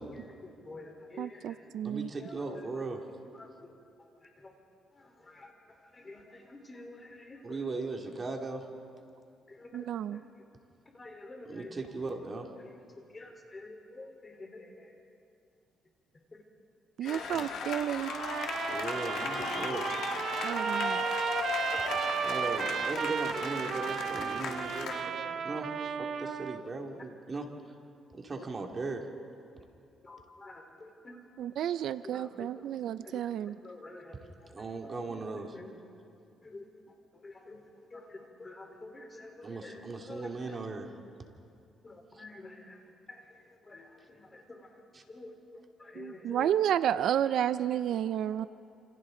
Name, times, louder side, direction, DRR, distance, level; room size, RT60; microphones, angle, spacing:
voice 1, 0.1-1.7 2.2-2.8 3.3-3.7 4.0-4.5 4.9-7.8 9.5-10.4 10.9-11.8 12.0-12.1 12.5-15.0 17.0-17.5 19.0-19.8 20.1-20.2 20.6-20.7 21.7-22.5 23.0-23.1 23.4-23.8 24.8-25.6 26.6-26.7 30.0-31.2 31.6-32.7 33.0-34.5 34.8-35.7 36.4-37.6 37.9-40.6 41.8-46.6, left 2 dB, 25° left, 2 dB, 3.9 m, -49 dB
voice 2, 1.2-2.1 9.7-10.2 17.0-18.1 20.4-21.0 31.4-33.6 46.0-48.5, right 10 dB, 75° right, 14 dB, 0.5 m, -31 dB
voice 3, 1.8-3.0 7.4-8.6 11.5-12.5 17.3-17.5 18.7-19.9 22.2-24.9 25.4-25.7 26.2-27.5 28.1-29.0 34.5-35.5 39.4-40.9, right 3 dB, 35° right, 2 dB, 2.3 m, -38 dB
sound 1, 17.0-25.0, left 5 dB, 80° left, 2.0 m, -37 dB
Trumpet, 18.0-26.6, right 7 dB, 55° right, 0.8 m, -34 dB
30.0 x 27.5 x 3.9 m, 2.5 s
cardioid pair, 105°, 0 cm